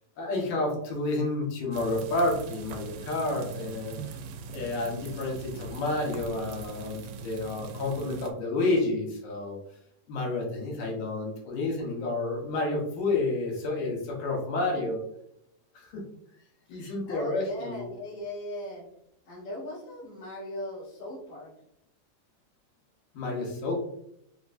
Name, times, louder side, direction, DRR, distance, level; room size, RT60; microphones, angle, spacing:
voice 1, 0.2-4.0 4.5-9.6 10.1-15.0 15.8-16.0 16.7-17.8 23.1-23.9, left 2 dB, 85° left, -1 dB, 2.8 m, -30 dB
sound 1, 1.7-8.3, right 4 dB, 80° right, 2.1 m, -41 dB
voice 2, 16.7-18.8 19.2-21.5, left 1 dB, 60° left, -9 dB, 2.9 m, -39 dB
6.9 x 2.6 x 2.6 m, 0.76 s
omnidirectional pair, 3.7 m